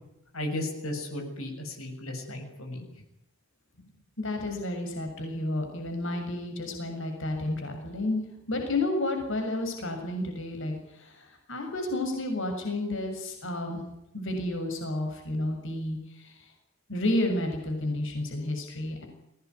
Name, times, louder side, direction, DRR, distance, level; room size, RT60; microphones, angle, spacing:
voice 1, 0.3-2.9 3.8-3.9, left 1 dB, 75° left, 3 dB, 7.0 m, -35 dB
voice 2, 4.2-8.2 8.5-10.7 11.0-13.8 14.1-16.0 16.2-16.3 16.9-19.0, left 1 dB, 60° left, 4 dB, 6.9 m, -31 dB
23.5 x 18.5 x 9.7 m, 0.85 s
head